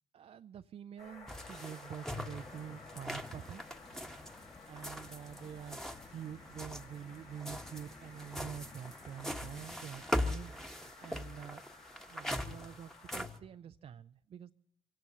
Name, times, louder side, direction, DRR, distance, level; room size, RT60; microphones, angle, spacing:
voice 1, 0.1-3.6 4.3-11.6 12.1-14.5, right 9 dB, 45° right, 9 dB, 0.5 m, -47 dB
sound 1, 1.0-13.2, left 3 dB, 55° left, 2.9 m, -55 dB
sound 2, 1.3-6.1 6.4-13.4, left 1 dB, 5° left, 1.4 m, -41 dB
sound 3, 2.0-10.1, left 3 dB, 25° left, 1.8 m, -57 dB
25.5 x 17.5 x 2.9 m, 0.76 s
hypercardioid pair, 40°, 14 cm